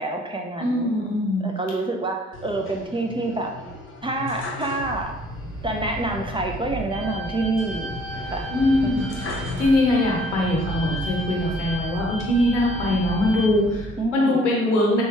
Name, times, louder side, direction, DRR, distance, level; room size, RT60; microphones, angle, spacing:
voice 1, 0.0-0.9 1.4-3.5 4.0-5.1 5.6-7.9 8.3-8.5 14.0-14.4, right 2 dB, 15° right, 1 dB, 0.4 m, -27 dB
voice 2, 0.6-1.5 8.5-13.9 14.1-15.0, left 1 dB, 85° left, -3 dB, 0.8 m, -22 dB
sound 1, 2.3-5.4 5.7-5.8 7.6-10.3 10.8-11.7, left 2 dB, 35° left, 0.9 m, -37 dB
sound 2, 4.8-13.9, right 1 dB, 90° right, 0.8 m, -35 dB
sound 3, 6.9-13.5, equal, 55° right, 0.8 m, -35 dB
3.4 x 3.0 x 3.1 m, 0.97 s
figure-of-eight pair, 45°, 35 cm